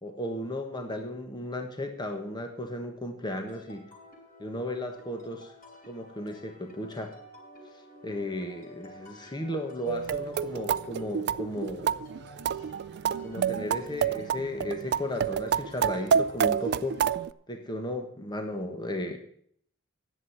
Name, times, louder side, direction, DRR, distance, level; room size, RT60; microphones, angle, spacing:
voice 1, 0.0-3.9 4.4-5.5 5.9-7.2 8.0-12.0 13.2-17.0 17.5-19.2, left 1 dB, 20° left, 5 dB, 1.3 m, -35 dB
sound 1, 3.5-17.2, equal, 45° left, 6.5 m, -51 dB
sound 2, 9.9-17.3, right 7 dB, 55° right, 0.4 m, -28 dB
11.0 x 7.8 x 7.1 m, 0.63 s
head